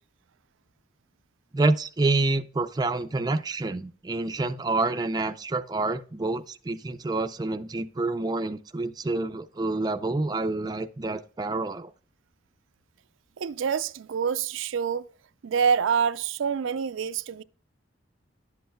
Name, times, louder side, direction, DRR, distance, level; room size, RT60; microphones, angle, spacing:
voice 1, 1.5-11.9, right 2 dB, 20° right, 0.4 m, -28 dB
voice 2, 13.4-15.1 15.4-17.4, right 6 dB, 85° right, 0.4 m, -26 dB
11.0 x 7.7 x 2.2 m
head